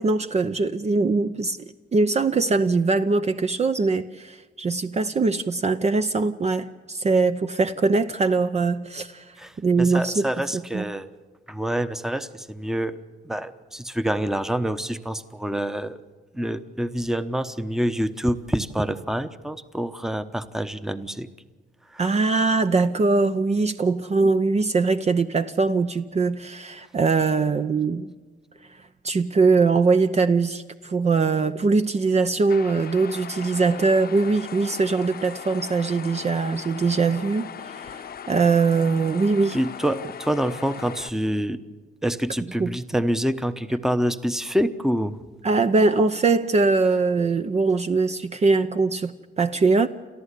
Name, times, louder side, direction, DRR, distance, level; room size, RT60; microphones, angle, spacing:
voice 1, 0.0-1.6 1.9-9.2 9.6-10.8 22.0-28.1 29.0-39.6 42.6-42.8 45.4-49.9, right 4 dB, 35° right, 0.7 m, -22 dB
voice 2, 9.4-11.1 11.5-13.0 13.2-16.0 16.3-21.3 21.9-22.0 39.5-41.6 42.0-45.2, equal, ahead, 0.9 m, -26 dB
sound 1, 32.5-41.1, left 8 dB, 50° left, 0.9 m, -38 dB
29.5 x 13.5 x 8.3 m
cardioid pair, 90°, 20 cm